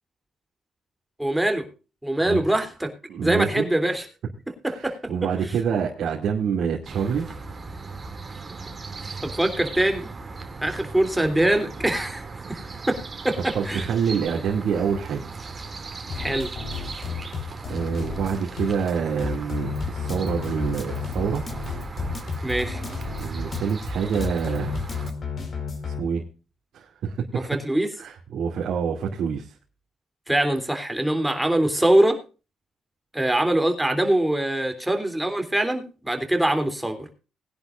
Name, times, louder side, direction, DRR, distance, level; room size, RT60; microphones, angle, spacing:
voice 1, 1.2-1.6 2.0-2.9 3.2-4.0 4.6-5.0 9.2-10.1 10.6-12.2 12.5-12.6 12.9-13.9 16.1-16.5 22.4-22.8 27.5-27.9 30.3-32.2 33.1-37.1, right 1 dB, 5° right, 5 dB, 3.3 m, -23 dB
voice 2, 3.1-3.6 4.7-7.3 13.5-15.3 17.7-21.4 23.2-24.7 25.8-26.2 26.7-27.5 28.0-29.5, right 6 dB, 70° right, -1 dB, 2.6 m, -26 dB
sound 1, 6.9-25.1, right 4 dB, 35° right, 2.6 m, -37 dB
sound 2, 16.1-26.0, left 6 dB, 50° left, 5.0 m, -33 dB
Drum kit, 19.8-25.1, left 1 dB, 25° left, 2.6 m, -35 dB
20.5 x 10.5 x 2.5 m, 0.34 s
cardioid pair, 90°, 0 cm